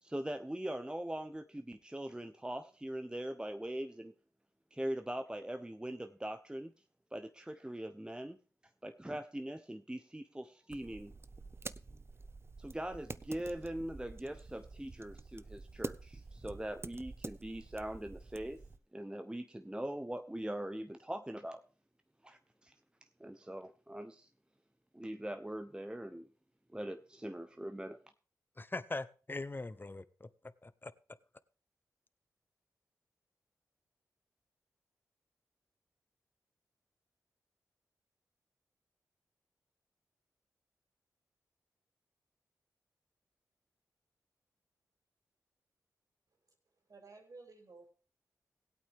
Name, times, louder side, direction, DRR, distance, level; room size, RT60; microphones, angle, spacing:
voice 1, 0.0-4.1 4.7-6.7 7.1-8.4 8.8-11.1 12.6-18.6 18.9-21.6 22.2-22.7 23.2-24.3 24.9-26.3 26.7-28.0, right 1 dB, 10° right, 8 dB, 0.9 m, -41 dB
sound 1, 10.7-18.8, right 3 dB, 35° right, 0.6 m, -48 dB
voice 2, 28.6-30.3 30.6-30.9, left 2 dB, 30° left, 15 dB, 0.9 m, -41 dB
voice 3, 46.9-47.9, right 3 dB, 55° right, 3 dB, 3.4 m, -54 dB
16.5 x 8.6 x 3.7 m, 0.36 s
supercardioid pair, 40°, 7 cm